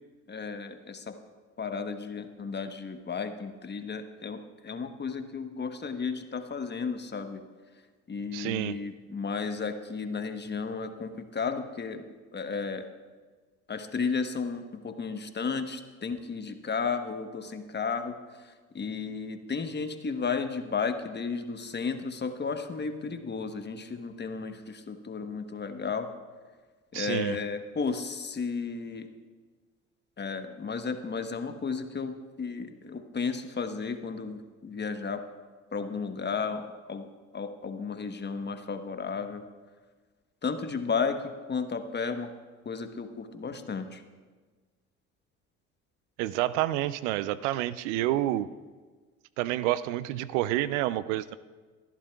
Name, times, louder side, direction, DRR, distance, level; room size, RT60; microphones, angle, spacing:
voice 1, 0.3-1.2 1.6-7.4 8.1-12.0 12.3-12.8 13.7-26.1 26.9-29.1 30.2-35.2 35.7-37.1 37.3-39.4 40.4-42.3 42.6-44.0, left 5 dB, 30° left, 7 dB, 1.1 m, -33 dB
voice 2, 8.3-8.8 26.9-27.4 46.2-48.5 49.4-51.4, right 14 dB, 75° right, 17 dB, 0.5 m, -29 dB
23.0 x 11.5 x 2.3 m, 1.4 s
hypercardioid pair, 60°, 36 cm